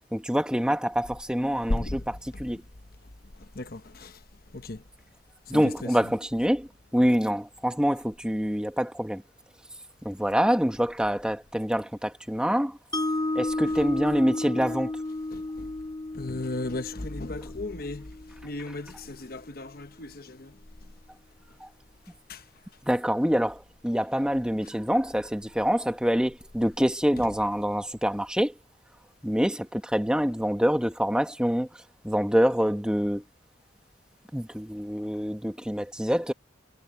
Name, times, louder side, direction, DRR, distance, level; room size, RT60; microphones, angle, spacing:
voice 1, 0.0-2.6 5.5-6.7 6.9-9.2 10.0-12.8 13.3-14.9 21.6-21.7 22.9-28.5 29.2-31.7 32.0-33.2 34.3-36.3, equal, 5° right, 1.3 m, -26 dB
voice 2, 1.7-2.1 3.4-4.2 4.5-4.8 5.5-6.1 13.7-13.8 15.3-15.7 16.1-18.1 18.4-20.6 22.3-22.4 27.2-27.3, left 2 dB, 50° left, 1.0 m, -35 dB
Mallet percussion, 12.9-19.1, left 2 dB, 20° left, 0.8 m, -33 dB
head